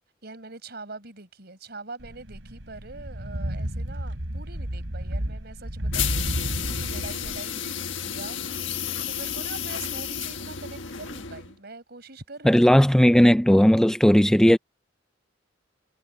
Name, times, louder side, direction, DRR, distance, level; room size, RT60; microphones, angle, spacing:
voice 1, 0.2-13.1, right 3 dB, 55° right, 5.2 m, -43 dB
sound 1, 2.0-7.4, right 1 dB, 85° right, 3.3 m, -32 dB
sound 2, 5.9-11.5, left 9 dB, 80° left, 1.4 m, -32 dB
voice 2, 12.4-14.6, equal, 5° left, 0.4 m, -16 dB
head